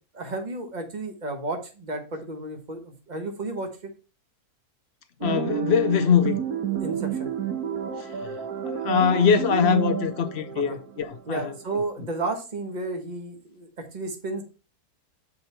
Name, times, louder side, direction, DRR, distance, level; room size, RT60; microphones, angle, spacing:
voice 1, 0.1-3.7 6.8-7.3 10.5-10.8 11.3-14.4, right 2 dB, 30° right, 1.2 m, -32 dB
voice 2, 5.2-6.4 8.0-11.8, left 7 dB, 60° left, 0.7 m, -23 dB
sound 1, 5.2-11.6, right 8 dB, 75° right, 1.6 m, -30 dB
6.6 x 4.8 x 4.3 m
omnidirectional pair, 1.6 m